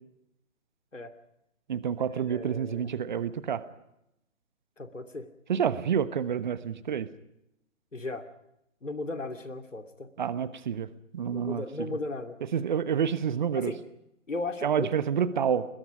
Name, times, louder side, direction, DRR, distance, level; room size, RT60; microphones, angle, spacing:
voice 1, 1.7-3.6 5.5-7.1 10.2-10.9 11.1-11.6 12.5-13.7 14.6-15.6, right 8 dB, 40° right, 14 dB, 1.2 m, -28 dB
voice 2, 2.3-2.9 4.8-5.3 5.8-5.9 7.9-8.2 8.8-10.1 11.3-12.4 13.6-13.8 14.3-14.9, left 2 dB, 75° left, 7 dB, 2.7 m, -36 dB
28.5 x 21.0 x 5.1 m, 0.83 s
figure-of-eight pair, 135°, 38 cm